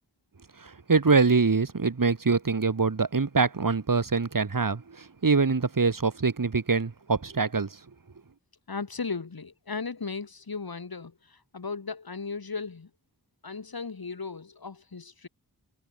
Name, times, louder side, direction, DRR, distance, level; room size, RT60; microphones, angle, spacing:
voice 1, 0.6-7.7, right 4 dB, 65° right, 3.7 m, -24 dB
voice 2, 8.7-12.9 13.4-15.3, left 4 dB, 80° left, 6.8 m, -36 dB
wide cardioid pair, 70°, 36 cm